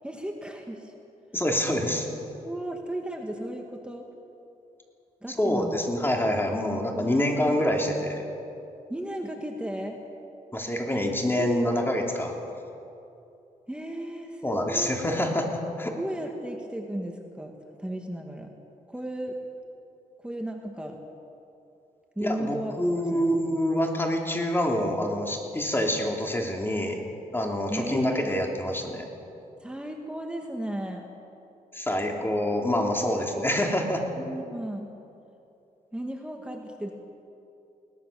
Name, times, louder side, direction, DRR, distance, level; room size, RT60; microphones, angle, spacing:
voice 1, 0.0-0.9 1.8-1.9 2.4-4.0 5.2-5.8 7.0-7.6 8.9-10.0 10.9-11.1 11.4-11.8 13.7-15.0 16.0-17.5 17.8-18.5 18.9-19.4 20.2-21.0 22.2-23.4 27.7-28.4 29.6-31.1 33.2-33.4 34.2-34.9 35.9-36.9, right 1 dB, 5° right, 2 dB, 1.9 m, -35 dB
voice 2, 1.3-2.0 5.4-8.2 10.5-12.3 14.4-15.9 22.2-27.0 27.3-29.1 31.7-34.0, left 1 dB, 15° left, 1 dB, 3.3 m, -26 dB
22.0 x 18.5 x 7.0 m, 2.7 s
cardioid pair, 90°, 14 cm